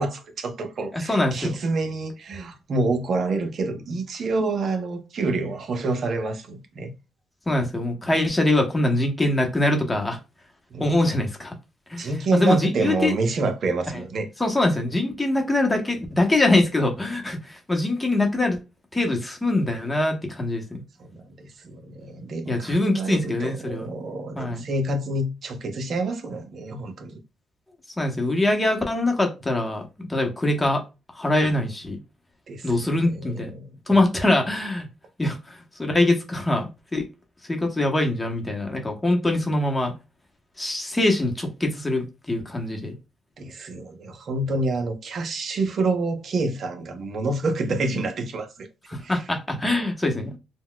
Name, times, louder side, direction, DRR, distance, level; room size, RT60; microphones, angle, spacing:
voice 1, 0.0-6.9 10.7-10.9 12.0-14.3 21.0-27.2 32.5-34.0 43.4-48.7 49.0-49.2, right 3 dB, 55° right, 0.7 m, -28 dB
voice 2, 0.9-1.5 7.5-10.2 10.8-11.5 11.9-13.1 14.4-18.6 18.9-20.8 22.5-23.9 24.4-24.7 28.0-30.8 31.1-32.0 32.6-33.5 33.9-34.9 35.2-37.0 37.5-39.9 40.6-42.9 48.9-50.4, left 2 dB, 15° left, 0.9 m, -23 dB
3.9 x 2.2 x 2.2 m
cardioid pair, 90°, 0 cm